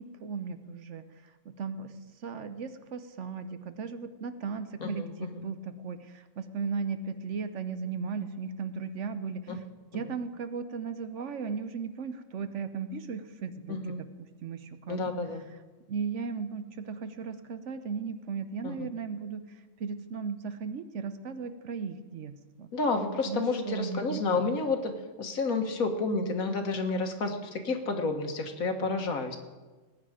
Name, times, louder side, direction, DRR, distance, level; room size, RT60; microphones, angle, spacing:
voice 1, 0.0-9.5 9.9-14.1 14.4-15.0 15.9-22.7 23.3-24.2, right 5 dB, 65° right, 10 dB, 1.1 m, -36 dB
voice 2, 4.8-5.5 9.5-9.6 13.7-14.0 14.9-15.4 18.6-18.7 22.7-24.9 25.2-29.4, left 3 dB, 90° left, 5 dB, 1.8 m, -30 dB
19.5 x 9.3 x 5.0 m, 1.3 s
omnidirectional pair, 1.4 m